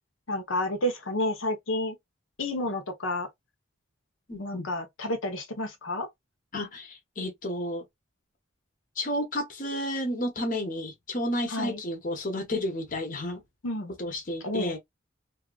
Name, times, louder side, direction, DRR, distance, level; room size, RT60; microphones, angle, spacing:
voice 1, 0.3-1.9 2.4-3.3 4.4-6.1 11.5-11.8 13.6-13.9 14.4-14.7, left 1 dB, 75° left, 0.8 m, -30 dB
voice 2, 4.3-4.7 6.5-7.8 9.0-13.4 14.0-14.8, left 1 dB, 40° left, 0.8 m, -31 dB
2.7 x 2.4 x 2.3 m
head